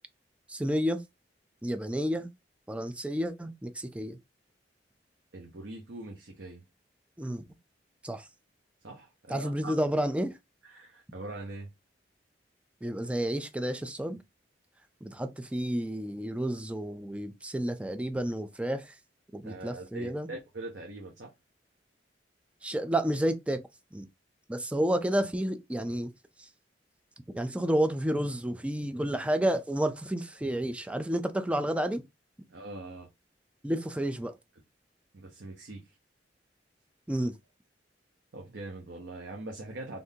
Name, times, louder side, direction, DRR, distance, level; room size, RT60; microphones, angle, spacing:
voice 1, 0.5-1.0 1.6-2.3 2.7-4.2 7.2-7.4 8.0-8.3 9.3-10.3 12.8-14.2 15.0-19.0 19.3-20.3 22.6-23.6 23.9-24.1 24.5-26.1 26.4-26.5 27.3-32.0 33.6-34.4 37.1-37.3, right 1 dB, 5° right, 0.3 m, -30 dB
voice 2, 5.3-6.6 8.8-9.7 10.6-11.7 19.4-21.3 32.5-33.1 35.1-36.0 38.3-40.0, right 2 dB, 75° right, 0.7 m, -42 dB
3.6 x 2.5 x 2.7 m
head